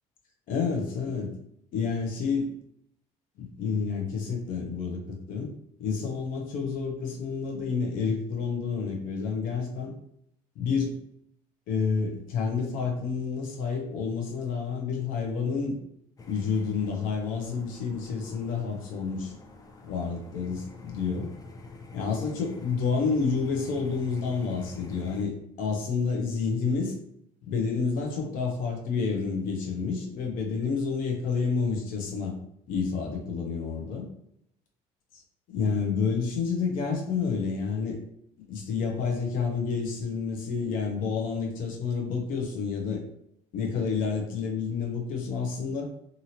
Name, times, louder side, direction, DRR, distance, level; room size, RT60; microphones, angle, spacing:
voice 1, 0.5-1.3 1.7-2.5 3.4-5.5 5.8-9.9 10.6-11.0 11.7-15.8 16.3-19.3 19.9-21.3 21.9-27.0 27.4-32.3 32.7-34.0 35.5-38.0 38.5-43.0 43.5-45.9, left 5 dB, 75° left, 2 dB, 0.8 m, -29 dB
sound 1, 16.2-25.2, left 3 dB, 25° left, 0.5 m, -47 dB
2.8 x 2.7 x 2.9 m, 0.73 s
supercardioid pair, 90°, 14 cm